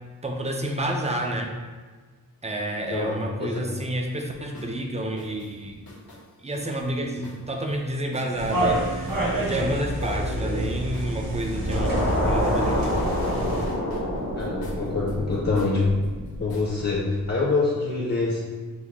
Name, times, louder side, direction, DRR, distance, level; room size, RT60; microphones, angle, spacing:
voice 1, 0.2-1.6 2.4-5.8 6.4-12.0 12.3-13.1, right 1 dB, 20° right, 1 dB, 0.5 m, -29 dB
voice 2, 2.7-3.6 10.0-10.7 14.4-15.9 16.4-18.4, left 3 dB, 45° left, -4 dB, 0.8 m, -26 dB
sound 1, 4.5-4.7 5.2-8.5 9.1-10.6 10.9-12.3 12.5-16.7, left 1 dB, 80° left, 0.9 m, -47 dB
sound 2, 8.3-13.7, right 1 dB, 70° right, 1.2 m, -27 dB
sound 3, 11.7-16.9, equal, 50° right, 1.4 m, -28 dB
6.1 x 2.2 x 3.5 m, 1.4 s
wide cardioid pair, 115°, 35 cm